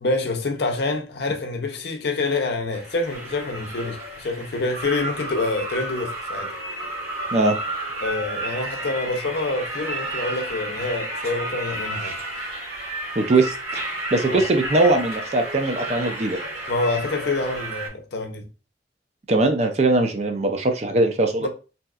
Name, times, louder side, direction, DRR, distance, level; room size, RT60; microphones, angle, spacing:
voice 1, 0.0-6.5 8.0-12.1 14.3-14.4 16.7-18.5 21.4-21.5, left 3 dB, 65° left, 0.6 m, -26 dB
sound 1, 2.7-17.9, right 1 dB, 65° right, 1.5 m, -32 dB
voice 2, 13.2-13.8 14.1-16.4 19.3-21.5, right 2 dB, 35° right, 0.4 m, -20 dB
3.1 x 2.8 x 2.3 m
head